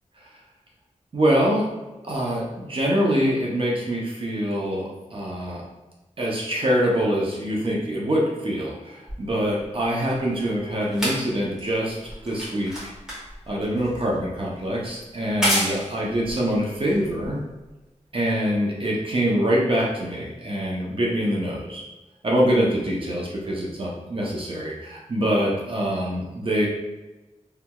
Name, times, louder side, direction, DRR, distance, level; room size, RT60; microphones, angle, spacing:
voice 1, 1.1-1.7 2.0-5.6 6.2-12.9 13.5-17.4 18.1-21.8 22.2-26.7, equal, 45° right, -4 dB, 0.6 m, -24 dB
sound 1, 9.1-17.7 18.5-18.6, equal, 5° right, 1.4 m, -31 dB
3.2 x 2.9 x 2.3 m, 1.1 s
wide cardioid pair, 80°, 13 cm